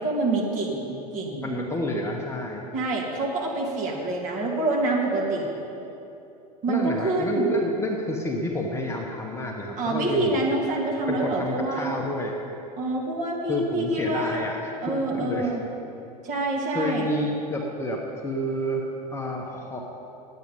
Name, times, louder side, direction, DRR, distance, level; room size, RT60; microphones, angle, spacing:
voice 1, 0.0-1.5 2.7-5.5 6.6-7.5 9.8-11.9 12.8-14.4 14.8-15.6 16.2-17.1, right 2 dB, 40° right, -2 dB, 2.3 m, -26 dB
voice 2, 1.4-2.6 6.7-10.4 11.1-12.3 13.5-15.5 16.7-19.8, left 1 dB, 15° left, -1 dB, 1.1 m, -29 dB
10.5 x 8.5 x 5.3 m, 2.9 s
figure-of-eight pair, 85°, 21 cm